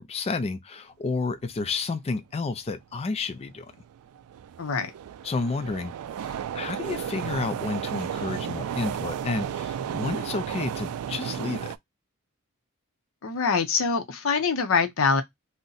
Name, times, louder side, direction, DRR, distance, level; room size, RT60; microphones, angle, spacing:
voice 1, 0.0-3.7 5.2-5.9 6.2-11.7, left 4 dB, 30° left, 0.3 m, -31 dB
sound 1, 3.1-3.2 3.8-11.8, right 9 dB, 85° right, 0.3 m, -33 dB
voice 2, 4.6-4.9 13.2-15.2, left 5 dB, 65° left, 0.6 m, -24 dB
2.6 x 2.1 x 3.8 m
head